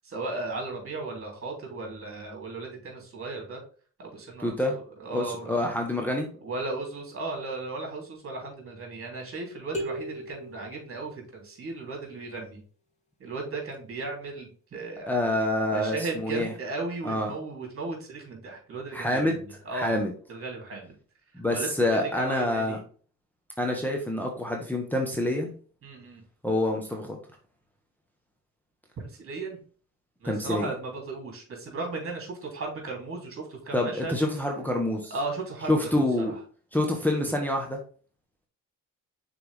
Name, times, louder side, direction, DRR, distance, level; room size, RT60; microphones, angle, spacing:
voice 1, 0.0-3.6 4.0-5.7 6.4-12.6 13.2-15.1 15.7-20.0 20.3-20.9 21.5-22.8 25.8-26.2 29.0-29.6 30.2-34.1 35.1-36.4, right 3 dB, 45° right, 0 dB, 3.4 m, -36 dB
voice 2, 4.4-4.8 5.1-6.3 15.1-16.5 17.0-17.3 18.9-19.4 19.7-20.1 21.3-22.8 23.6-25.5 26.4-27.2 30.2-30.7 33.7-35.1 35.7-36.3 36.7-37.8, left 1 dB, 5° left, 0 dB, 1.3 m, -27 dB
sound 1, 9.7-11.6, right 1 dB, 25° left, 2.8 m, -37 dB
6.0 x 4.5 x 3.6 m, 0.41 s
cardioid pair, 90°, 30 cm